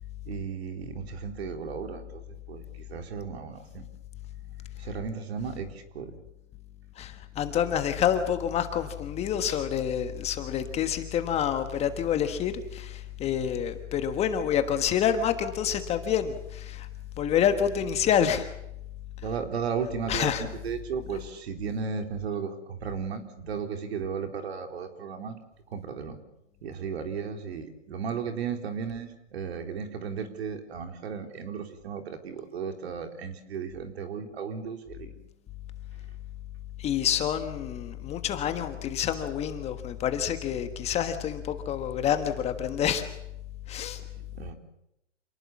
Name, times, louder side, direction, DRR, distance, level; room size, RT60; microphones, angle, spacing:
voice 1, 0.2-3.9 4.8-6.2 19.2-25.4 25.7-26.2 26.6-35.1 44.0-44.5, right 6 dB, 55° right, 6 dB, 4.1 m, -35 dB
voice 2, 7.0-16.9 17.2-18.5 20.1-20.5 36.8-43.0 43.7-44.0, left 9 dB, 15° left, 8 dB, 1.4 m, -27 dB
28.0 x 19.5 x 7.3 m, 0.82 s
hypercardioid pair, 140°, 37 cm